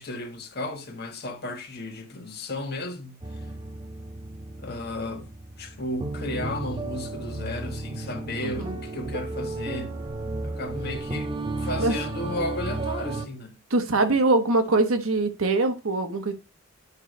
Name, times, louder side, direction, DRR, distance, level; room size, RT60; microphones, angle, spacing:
voice 1, 0.0-3.5 4.6-5.3 5.6-10.0 10.4-11.3 11.6-13.6, left 2 dB, 45° left, 1.2 m, -34 dB
sound 1, 3.2-13.3, right 2 dB, 20° right, 0.7 m, -33 dB
voice 2, 8.4-8.7 11.8-11.9 13.7-16.3, right 2 dB, 75° right, 1.1 m, -23 dB
9.7 x 3.4 x 5.0 m
head